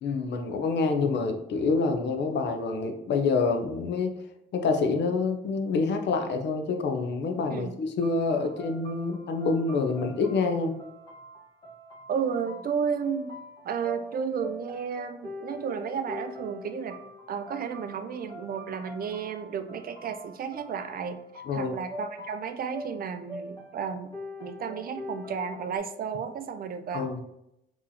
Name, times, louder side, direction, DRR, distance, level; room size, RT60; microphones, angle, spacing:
voice 1, 0.0-4.1 4.5-10.8 21.5-21.7 26.9-27.2, left 4 dB, 60° left, 5 dB, 0.6 m, -27 dB
voice 2, 7.5-7.8 12.1-13.3 13.6-17.0 17.3-27.0, right 6 dB, 50° right, 8 dB, 0.5 m, -33 dB
sound 1, 8.0-25.8, left 1 dB, 20° left, 1.1 m, -44 dB
3.8 x 3.0 x 2.7 m, 0.83 s
cardioid pair, 90°, 20 cm